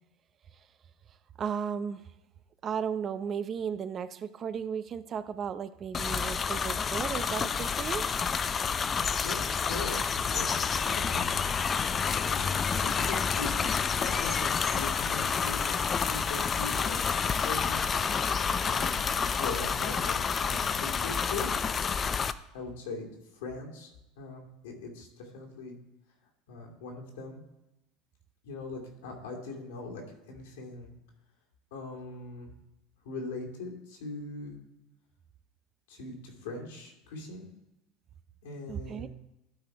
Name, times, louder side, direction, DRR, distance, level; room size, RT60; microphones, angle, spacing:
voice 1, 1.4-2.0 2.6-8.0 12.7-12.8 38.7-39.1, right 7 dB, 40° right, 13 dB, 0.6 m, -35 dB
sound 1, 5.9-22.3, left 6 dB, 30° left, 0.4 m, -29 dB
voice 2, 9.2-11.3 12.1-18.0 18.7-19.0 19.4-21.5 22.5-25.8 26.5-27.4 28.4-30.9 31.7-32.5 33.0-34.6 35.9-37.5 38.4-39.1, left 3 dB, 90° left, 0 dB, 2.7 m, -41 dB
12.5 x 4.2 x 4.6 m, 0.92 s
supercardioid pair, 105°, 0 cm